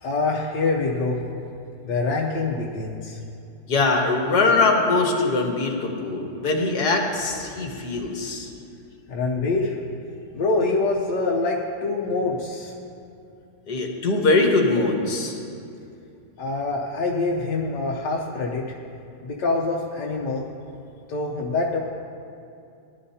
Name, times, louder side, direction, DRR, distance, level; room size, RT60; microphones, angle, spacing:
voice 1, 0.0-1.2 1.8-3.2 9.1-9.7 10.3-12.7 16.4-18.7 19.2-20.4 21.1-21.8, left 3 dB, 90° left, -2 dB, 1.6 m, -25 dB
voice 2, 3.7-8.5 13.7-15.4, left 3 dB, 75° left, 1 dB, 1.9 m, -22 dB
19.0 x 11.5 x 2.8 m, 2.6 s
omnidirectional pair, 1.8 m